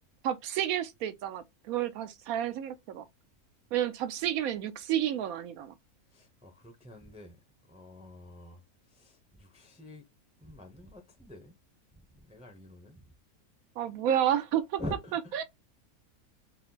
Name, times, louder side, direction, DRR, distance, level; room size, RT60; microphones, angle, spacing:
voice 1, 0.2-3.1 3.7-5.7 13.8-14.8 15.4-15.5, right 10 dB, 75° right, 1.0 m, -30 dB
voice 2, 6.1-7.4 7.7-10.1 10.4-11.6 11.9-13.1 14.8-15.3, left 1 dB, 5° right, 0.5 m, -46 dB
4.3 x 2.0 x 3.8 m
omnidirectional pair, 1.6 m